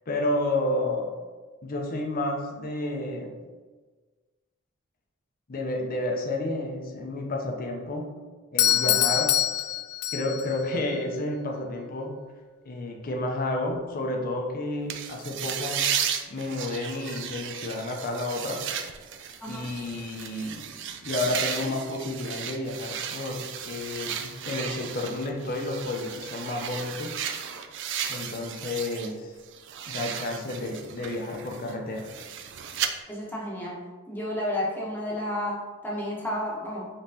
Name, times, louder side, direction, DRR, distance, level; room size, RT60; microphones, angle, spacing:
voice 1, 0.1-1.2 1.6-3.3 5.5-8.1 8.5-9.4 10.1-12.2 12.7-15.9 16.3-18.6 19.4-20.7 21.0-27.2 28.1-29.3 29.9-32.1, left 2 dB, 45° left, 1 dB, 0.6 m, -31 dB
Doorbell, 8.6-10.6, left 12 dB, 90° left, 0.3 m, -24 dB
voice 2, 8.6-9.0 19.4-19.7 33.1-33.8 34.1-36.9, left 1 dB, 10° left, -4 dB, 0.9 m, -32 dB
sound 1, 14.9-29.1 29.4-32.9, right 8 dB, 55° right, 0.4 m, -34 dB
5.2 x 3.1 x 2.7 m, 1.4 s
head